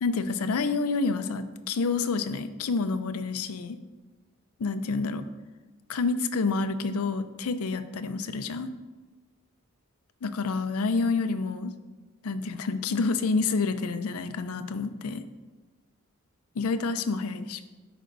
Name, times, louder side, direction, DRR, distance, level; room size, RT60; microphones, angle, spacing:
voice 1, 0.0-3.8 4.6-5.2 5.9-8.7 10.2-11.7 12.2-15.2 16.6-17.6, left 4 dB, 90° left, 11 dB, 0.5 m, -28 dB
11.0 x 5.1 x 2.6 m, 1.2 s
head